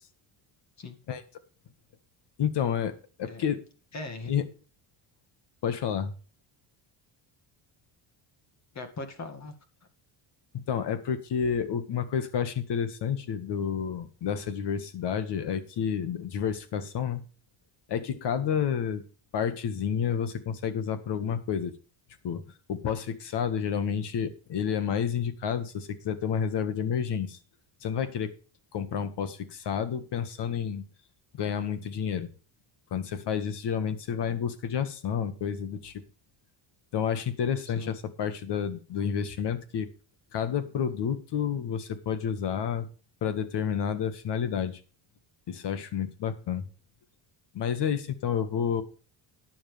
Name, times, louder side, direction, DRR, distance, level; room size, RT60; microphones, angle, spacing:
voice 1, 2.4-2.9 3.2-3.6 4.3-4.5 5.6-6.1 10.5-17.2 17.9-19.0 19.3-21.7 22.2-22.4 22.7-27.4 27.8-28.3 28.7-30.8 31.4-32.3 32.9-35.9 36.9-39.9 40.3-42.9 43.2-44.8 45.5-46.7 47.5-48.8, left 7 dB, 55° left, 11 dB, 1.8 m, -30 dB
voice 2, 3.9-4.3 8.7-9.5 37.7-37.9, left 3 dB, 35° left, 8 dB, 2.1 m, -39 dB
12.5 x 10.5 x 3.4 m, 0.35 s
cardioid pair, 150°, 49 cm